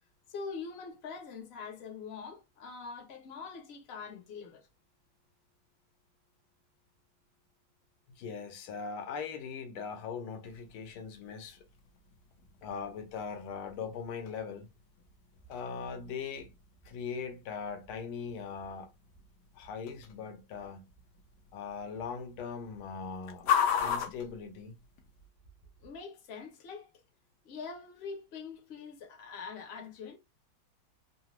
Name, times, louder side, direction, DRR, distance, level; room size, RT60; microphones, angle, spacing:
voice 1, 0.3-4.7 25.8-26.9 27.4-30.2, left 5 dB, 45° left, 0.9 m, -43 dB
voice 2, 8.2-11.6 12.6-14.7 15.5-16.5 16.8-18.9 19.5-20.8 21.5-23.5 23.8-24.7, left 6 dB, 85° left, 1.6 m, -40 dB
sound 1, 10.5-25.3, left 8 dB, 65° left, 1.1 m, -39 dB
3.8 x 2.1 x 2.9 m
omnidirectional pair, 2.3 m